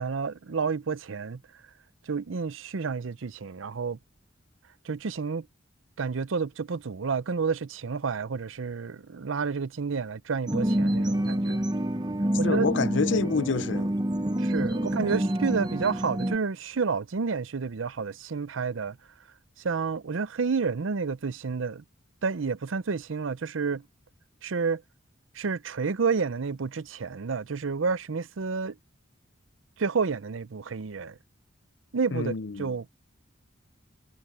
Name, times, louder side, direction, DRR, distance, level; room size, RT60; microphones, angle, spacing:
voice 1, 0.0-1.4 2.1-4.0 4.8-5.5 6.0-11.6 12.4-12.7 14.4-19.0 19.6-21.8 22.2-23.8 24.4-24.8 25.3-28.8 29.8-31.2 31.9-32.9, right 5 dB, 85° right, 0.6 m, -30 dB
sound 1, 10.5-16.4, right 1 dB, 20° right, 0.9 m, -27 dB
voice 2, 12.4-13.9 32.1-32.7, left 4 dB, 70° left, 0.6 m, -28 dB
head